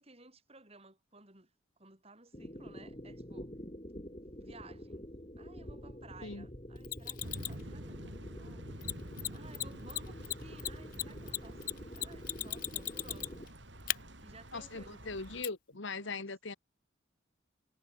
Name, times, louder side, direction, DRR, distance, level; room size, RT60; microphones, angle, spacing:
voice 1, 0.0-1.5 1.8-3.5 4.4-5.1 5.4-8.8 9.3-13.5 13.8-15.2 16.0-16.3, right 3 dB, 30° right, 7.7 m, -57 dB
sound 1, 2.3-13.5, equal, 30° left, 5.5 m, -47 dB
Mechanisms, 6.8-7.6 8.8-8.9 9.2-9.3 9.5-9.6 9.9-13.5 13.9-14.0 15.4-15.5, left 15 dB, 45° left, 0.3 m, -36 dB
sound 2, 7.2-15.4, right 1 dB, 65° right, 7.4 m, -49 dB
voice 2, 14.5-16.6, left 3 dB, 70° left, 1.7 m, -40 dB
head